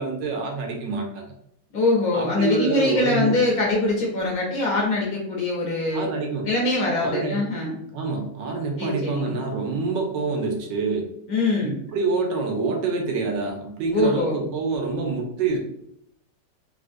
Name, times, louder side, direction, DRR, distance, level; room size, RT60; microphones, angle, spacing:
voice 1, 0.0-1.3 2.1-3.4 5.9-6.5 7.0-7.5 7.9-11.1 11.5-15.6, right 4 dB, 85° right, 2 dB, 1.3 m, -26 dB
voice 2, 1.7-6.1 6.4-7.8 8.8-9.3 11.3-11.8 13.9-14.4, left 2 dB, 65° left, -3 dB, 1.0 m, -23 dB
3.4 x 2.4 x 2.5 m, 0.72 s
omnidirectional pair, 1.9 m